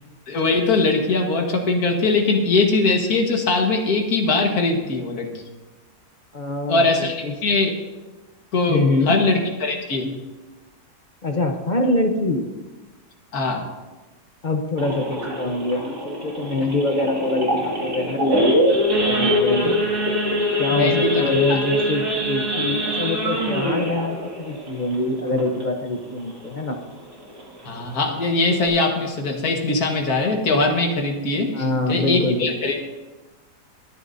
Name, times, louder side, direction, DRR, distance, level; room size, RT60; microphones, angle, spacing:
voice 1, 0.3-5.3 6.7-7.8 8.5-10.1 13.3-13.6 19.6-19.7 20.7-21.2 21.5-21.6 27.7-32.8, left 3 dB, 60° left, 2 dB, 2.0 m, -21 dB
voice 2, 6.3-7.3 8.7-9.2 11.2-12.5 14.4-19.7 20.6-26.8 31.5-32.7, left 2 dB, 40° left, 4 dB, 0.7 m, -24 dB
Idling / Accelerating revving vroom / Sawing, 14.8-25.9 26.3-26.5 26.7-26.8 27.3-27.6 28.0-28.1 28.3-28.7, equal, 60° right, 2.9 m, -23 dB
22.0 x 9.9 x 2.7 m, 1.2 s
omnidirectional pair, 1.9 m